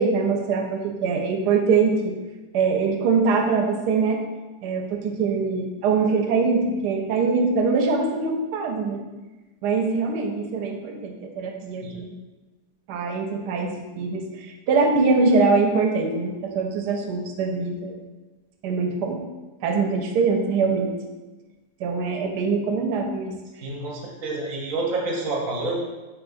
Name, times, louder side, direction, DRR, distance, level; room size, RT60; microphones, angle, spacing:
voice 1, 0.0-2.1 2.5-4.2 4.6-9.0 9.6-12.2 12.9-18.0 18.6-19.2 19.6-20.9 21.8-23.3, right 4 dB, 85° right, 3 dB, 1.2 m, -23 dB
voice 2, 23.6-25.8, right 2 dB, 60° right, -2 dB, 1.0 m, -28 dB
4.7 x 3.1 x 2.6 m, 1.1 s
omnidirectional pair, 1.7 m